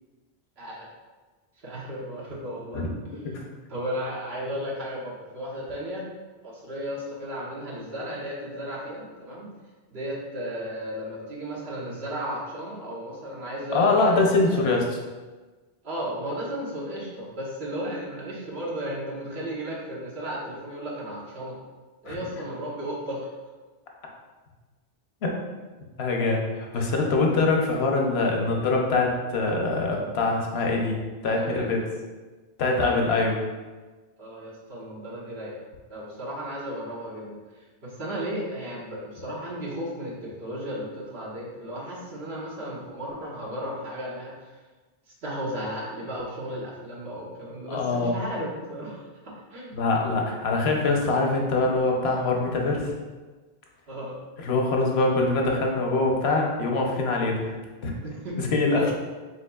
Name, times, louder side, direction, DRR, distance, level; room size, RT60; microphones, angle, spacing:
voice 1, 1.6-2.8 3.7-6.0 6.4-9.5 9.9-14.8 15.8-21.6 22.0-23.3 26.7-26.9 31.4-31.7 34.2-35.6 35.9-44.5 45.2-49.8 53.9-54.2 58.0-58.3 58.7-58.9, equal, 80° right, -5 dB, 1.4 m, -34 dB
voice 2, 13.7-14.8 22.1-22.2 25.2-25.3 26.0-31.0 31.2-31.8 32.6-33.4 47.7-48.1 49.7-52.9 54.4-57.5 57.8-57.9 58.4-58.8, left 3 dB, 85° left, 0 dB, 1.0 m, -23 dB
5.2 x 4.0 x 2.3 m, 1.3 s
omnidirectional pair, 1.0 m